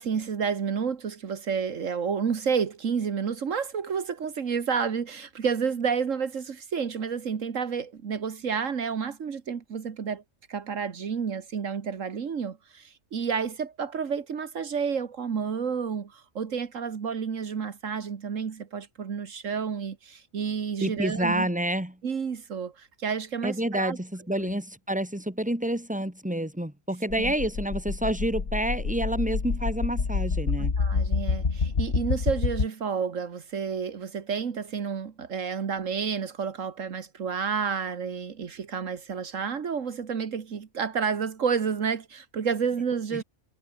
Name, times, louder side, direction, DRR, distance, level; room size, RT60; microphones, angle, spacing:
voice 1, 0.0-10.2 10.5-21.5 22.0-24.0 24.3-24.5 27.2-27.3 30.8-43.2, right 6 dB, 75° right, 1.8 m, -30 dB
voice 2, 20.8-22.0 23.4-30.7 43.1-43.2, right 1 dB, 5° right, 3.3 m, -28 dB
sound 1, 27.1-32.7, left 4 dB, 50° left, 2.0 m, -27 dB
omnidirectional pair, 1.3 m